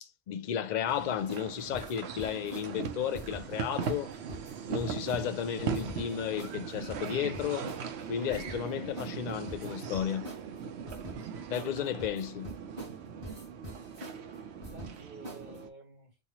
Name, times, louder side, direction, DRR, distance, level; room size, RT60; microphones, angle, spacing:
voice 1, 0.0-4.1 4.7-7.7 8.1-10.3 11.5-12.5, left 9 dB, 55° left, 0.5 m, -33 dB
sound 1, 0.9-15.7, right 6 dB, 90° right, 0.9 m, -39 dB
sound 2, 1.3-1.5 1.7-2.7 3.1-3.4 3.8-4.0 4.3-5.2 5.7-6.0 6.4-6.6 6.9-7.8 8.3-8.6 9.0-9.2 9.5-10.4 10.9-11.2 11.5-11.7 12.0-13.0 13.2-14.2 14.6-15.0 15.2-15.6, equal, 30° right, 2.0 m, -43 dB
voice 2, 11.5-12.2 14.7-16.2, right 3 dB, 45° right, 2.2 m, -50 dB
4.1 x 2.4 x 2.9 m
omnidirectional pair, 1.1 m